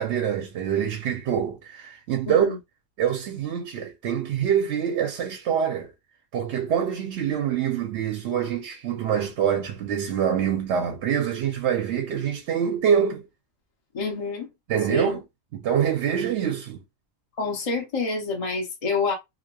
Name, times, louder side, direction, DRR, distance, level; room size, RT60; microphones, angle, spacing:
voice 1, 0.0-2.5 3.0-5.9 6.3-13.2 14.7-15.2 15.5-16.8, right 8 dB, 65° right, 0.8 m, -25 dB
voice 2, 2.3-2.6 13.9-14.5 14.9-15.2 17.4-19.1, left 4 dB, 40° left, 0.6 m, -27 dB
2.9 x 2.1 x 2.2 m
omnidirectional pair, 1.4 m